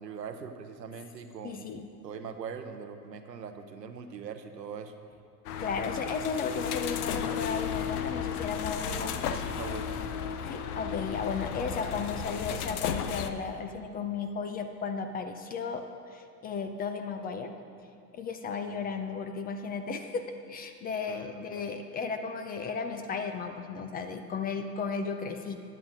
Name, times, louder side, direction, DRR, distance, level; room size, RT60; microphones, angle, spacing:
voice 1, 0.0-1.8 2.0-4.9 8.8-10.3 18.7-18.8 21.1-21.7, right 6 dB, 80° right, 8 dB, 0.8 m, -42 dB
voice 2, 1.4-1.9 5.6-9.4 10.5-17.5 18.1-20.2 20.5-25.6, left 5 dB, 20° left, 8 dB, 0.4 m, -35 dB
sound 1, 5.4-13.3, left 8 dB, 65° left, 0.7 m, -34 dB
15.0 x 10.5 x 2.6 m, 2.5 s
figure-of-eight pair, 75°, 49 cm